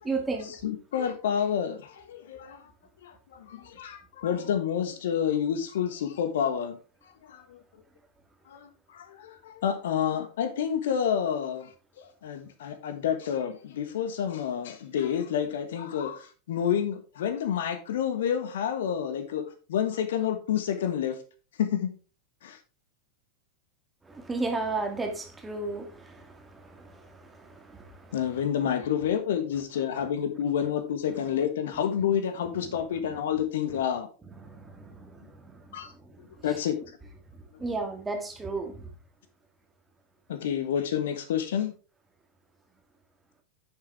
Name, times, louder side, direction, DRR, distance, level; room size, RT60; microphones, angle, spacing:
voice 1, 0.0-0.5 24.1-28.1 34.4-35.5 37.6-38.8, right 3 dB, 10° right, 3 dB, 2.2 m, -34 dB
voice 2, 0.6-2.7 3.0-6.8 7.2-7.6 8.5-11.7 12.0-19.4 19.7-21.2 21.6-21.9 22.4-22.6 28.1-34.1 35.7-35.9 36.2-36.7 40.3-41.7, left 8 dB, 60° left, 8 dB, 1.4 m, -29 dB
9.7 x 7.0 x 3.5 m, 0.35 s
figure-of-eight pair, 90°, 0 cm